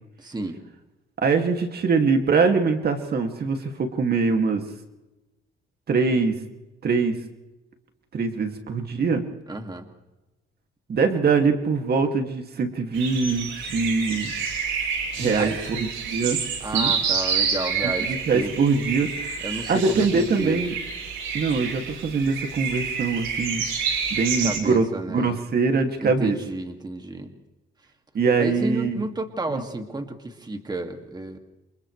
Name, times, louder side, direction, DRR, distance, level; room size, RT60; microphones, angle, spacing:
voice 1, 0.2-0.6 9.5-9.9 15.1-15.6 16.6-18.6 19.4-20.6 24.1-25.4 26.0-27.3 28.4-31.4, right 2 dB, 20° right, 5 dB, 2.3 m, -31 dB
voice 2, 1.2-4.6 5.9-6.3 6.8-7.2 8.1-9.2 10.9-14.3 15.2-16.4 16.7-16.9 17.8-20.7 21.3-23.6 24.1-26.4 28.1-29.0 29.5-29.6, right 4 dB, 50° right, 4 dB, 2.4 m, -23 dB
sound 1, 12.9-24.6, right 6 dB, 80° right, 5.2 m, -28 dB
28.5 x 28.0 x 3.3 m, 1.0 s
cardioid pair, 90°, 20 cm